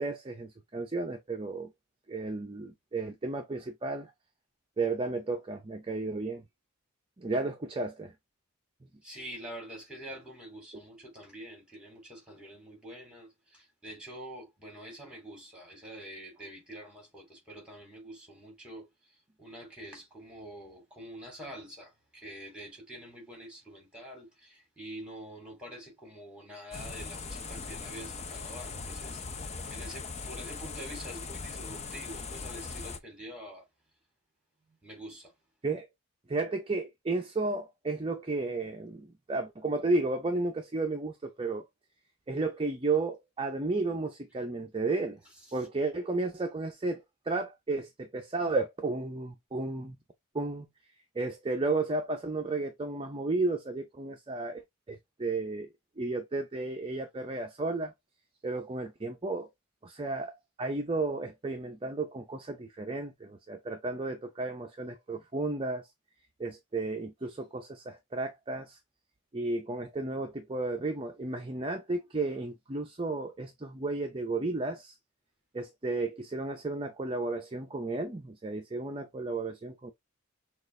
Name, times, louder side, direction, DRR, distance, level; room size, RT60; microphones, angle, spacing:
voice 1, 0.0-1.7 2.1-4.1 4.8-6.4 7.2-8.1 35.6-35.9 36.3-41.6 42.3-45.2 45.5-50.0 50.3-50.7 51.1-55.7 56.0-57.9 58.4-59.5 59.8-65.9 66.4-68.8 69.3-75.0 75.5-79.9, right 3 dB, 25° right, 0.5 m, -33 dB
voice 2, 9.0-18.9 19.4-33.7 34.8-35.3 45.5-45.6, right 1 dB, 5° right, 2.5 m, -46 dB
sound 1, 26.7-33.0, left 4 dB, 30° left, 0.6 m, -40 dB
6.3 x 2.5 x 3.2 m
head